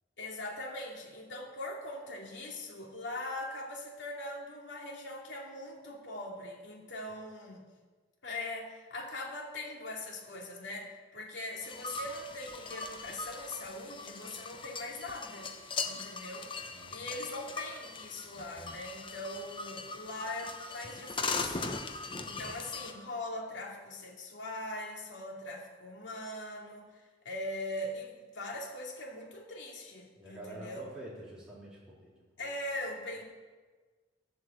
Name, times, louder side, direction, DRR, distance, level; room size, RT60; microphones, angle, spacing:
voice 1, 0.2-7.6 8.2-15.5 15.8-21.8 22.2-30.9 32.4-33.2, left 1 dB, 70° left, -1 dB, 2.6 m, -41 dB
sound 1, 11.6-22.9, left 4 dB, 25° left, 0.8 m, -40 dB
voice 2, 16.6-17.1 30.2-32.5 33.1-33.2, right 1 dB, 5° right, -8 dB, 3.7 m, -48 dB
12.0 x 7.9 x 7.7 m, 1.4 s
head